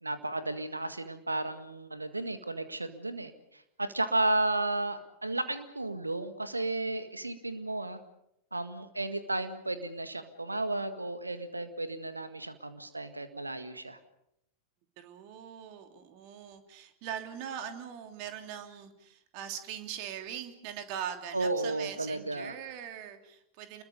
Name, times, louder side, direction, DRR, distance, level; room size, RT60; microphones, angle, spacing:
voice 1, 0.0-8.0 8.5-14.0 21.3-22.5, right 2 dB, 80° right, 10 dB, 1.8 m, -33 dB
voice 2, 15.0-23.8, right 9 dB, 45° right, 6 dB, 3.0 m, -41 dB
28.5 x 22.0 x 5.4 m, 0.78 s
figure-of-eight pair, 90°, 0 cm